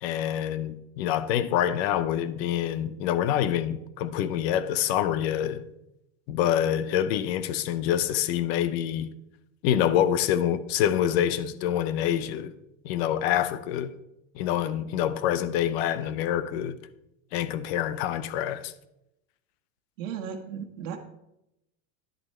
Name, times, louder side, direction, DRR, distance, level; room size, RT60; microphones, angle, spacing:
voice 1, 0.0-5.6 6.3-9.1 9.6-12.5 12.8-13.9 14.3-16.8 17.3-18.7, left 10 dB, 50° left, 0.7 m, -26 dB
voice 2, 20.0-21.0, right 7 dB, 70° right, 1.5 m, -35 dB
10.5 x 7.9 x 4.4 m
supercardioid pair, 160°, 40 cm